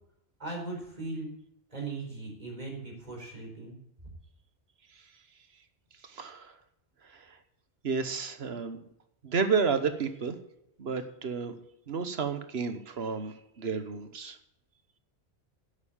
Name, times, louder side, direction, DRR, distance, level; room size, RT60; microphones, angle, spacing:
voice 1, 0.4-1.3 1.7-3.8, right 3 dB, 40° right, -1 dB, 4.6 m, -38 dB
voice 2, 6.1-6.5 7.8-8.8 9.2-10.4 10.8-11.6 11.9-14.4, right 5 dB, 70° right, 9 dB, 1.4 m, -31 dB
10.5 x 8.5 x 7.2 m, 0.80 s
omnidirectional pair, 1.1 m